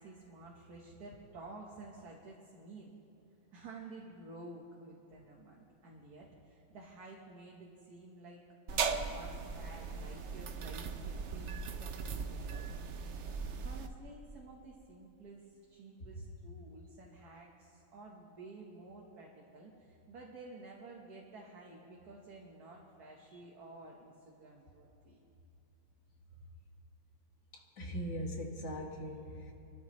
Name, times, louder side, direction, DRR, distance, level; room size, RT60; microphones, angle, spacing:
voice 1, 0.0-2.9 3.5-12.7 13.6-25.2, right 2 dB, 50° right, -2 dB, 1.7 m, -52 dB
sound 1, 8.7-13.9, right 5 dB, 75° right, 0.6 m, -38 dB
voice 2, 27.5-29.5, equal, 35° left, 0 dB, 1.9 m, -40 dB
26.5 x 13.0 x 3.2 m, 2.7 s
omnidirectional pair, 2.2 m